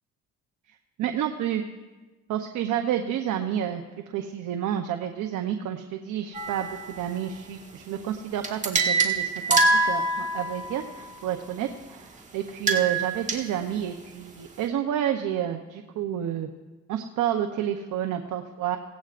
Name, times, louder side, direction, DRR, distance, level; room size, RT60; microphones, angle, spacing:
voice 1, 1.0-1.6 2.3-9.6 9.8-16.5 16.9-18.8, right 10 dB, 80° right, 5 dB, 0.8 m, -29 dB
sound 1, 6.3-7.0 8.4-10.7 12.5-13.4, right 2 dB, 25° right, 1.7 m, -24 dB
17.0 x 16.5 x 2.5 m, 1.2 s
cardioid pair, 90°, 30 cm